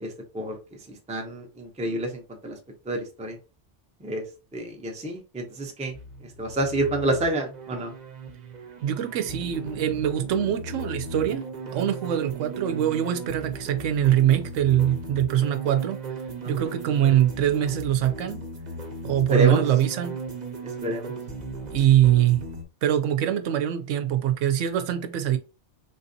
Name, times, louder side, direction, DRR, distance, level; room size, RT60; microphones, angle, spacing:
voice 1, 0.0-0.6 1.1-2.6 2.9-3.4 4.0-4.2 4.5-5.9 6.4-7.9 16.4-16.5 19.3-19.6 20.8-21.1, right 1 dB, 10° right, 0.4 m, -28 dB
sound 1, 5.9-22.6, right 3 dB, 45° right, 0.7 m, -37 dB
voice 2, 8.8-11.4 11.7-16.0 16.4-18.4 19.0-20.2 21.7-22.4 22.8-25.4, right 11 dB, 90° right, 0.9 m, -23 dB
3.8 x 2.6 x 2.6 m
omnidirectional pair, 1.2 m